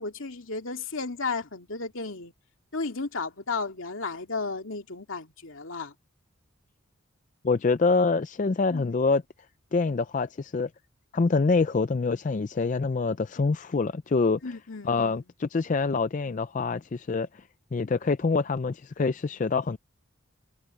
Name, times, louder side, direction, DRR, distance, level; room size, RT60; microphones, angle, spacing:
voice 1, 0.0-2.3 2.7-5.9 8.7-8.9 14.4-15.2, left 4 dB, 75° left, 2.5 m, -34 dB
voice 2, 7.4-9.2 9.7-10.7 11.1-14.4 14.8-17.4 17.7-19.8, left 4 dB, 40° left, 0.4 m, -25 dB
head